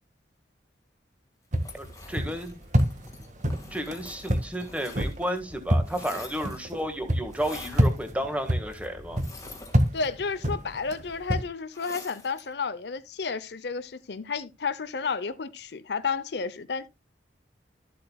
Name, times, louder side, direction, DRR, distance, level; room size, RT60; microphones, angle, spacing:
sound 1, 1.5-11.5, equal, 45° right, 1.6 m, -28 dB
sound 2, 1.6-5.4 5.6-6.8 7.3-8.0 9.1-10.3 11.7-12.5, left 3 dB, 20° left, 1.8 m, -46 dB
voice 1, 1.7-2.6 3.7-9.2, equal, 10° right, 1.6 m, -32 dB
voice 2, 9.9-16.9, left 5 dB, 65° left, 0.7 m, -31 dB
13.0 x 7.8 x 2.3 m
head